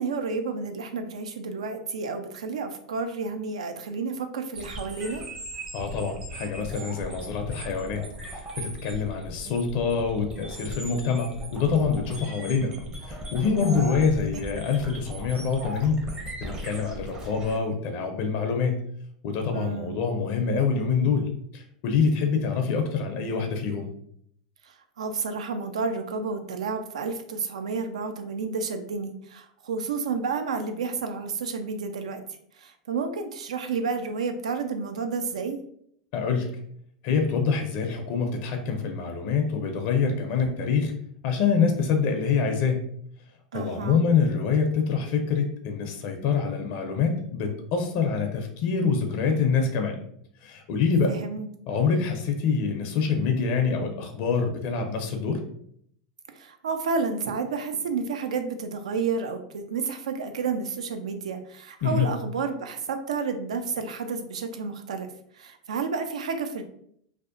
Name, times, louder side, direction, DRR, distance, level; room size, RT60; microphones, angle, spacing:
voice 1, 0.0-5.2 19.5-20.0 24.6-32.2 32.6-35.6 43.5-44.0 51.1-51.5 56.4-65.1 65.4-66.6, right 4 dB, 85° right, 8 dB, 0.3 m, -31 dB
sound 1, 4.5-17.6, right 1 dB, 25° right, 0.6 m, -38 dB
voice 2, 5.7-8.0 8.3-12.7 13.1-16.0 16.4-18.8 19.2-23.9 36.1-36.6 37.0-40.9 41.2-42.9 43.5-50.0 50.4-51.2 51.7-55.4 61.8-62.1, left 5 dB, 55° left, 4 dB, 0.4 m, -25 dB
2.6 x 2.1 x 2.4 m, 0.67 s
hypercardioid pair, 110°, 3 cm